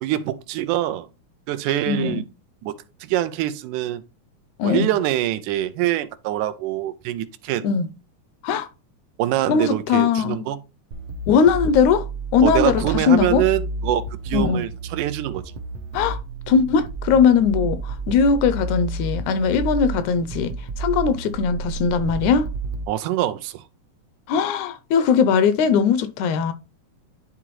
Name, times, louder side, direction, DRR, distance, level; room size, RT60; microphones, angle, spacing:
voice 1, 0.0-1.1 1.5-2.2 2.6-4.0 4.6-7.7 9.2-10.6 12.4-15.4 22.9-23.6, right 13 dB, 90° right, 2.1 m, -24 dB
voice 2, 1.9-2.2 4.6-4.9 7.6-7.9 8.4-8.7 9.5-10.5 11.3-13.5 14.3-14.6 15.9-16.2 16.5-22.5 24.3-26.5, left 6 dB, 80° left, 1.9 m, -20 dB
sound 1, 10.9-22.8, right 3 dB, 70° right, 1.6 m, -30 dB
11.0 x 3.7 x 3.0 m
omnidirectional pair, 3.5 m